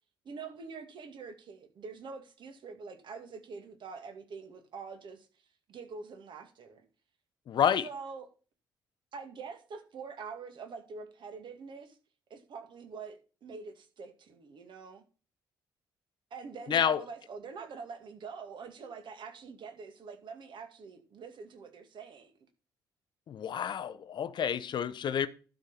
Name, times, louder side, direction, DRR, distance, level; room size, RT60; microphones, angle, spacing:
voice 1, 0.2-5.3 5.7-6.9 7.8-8.3 9.1-12.0 12.3-15.0 16.3-22.3, right 5 dB, 50° right, 2.0 m, -45 dB
voice 2, 7.5-7.9 16.7-17.0 23.3-25.3, left 8 dB, 45° left, 0.8 m, -29 dB
12.0 x 5.2 x 5.7 m
figure-of-eight pair, 45°, 10 cm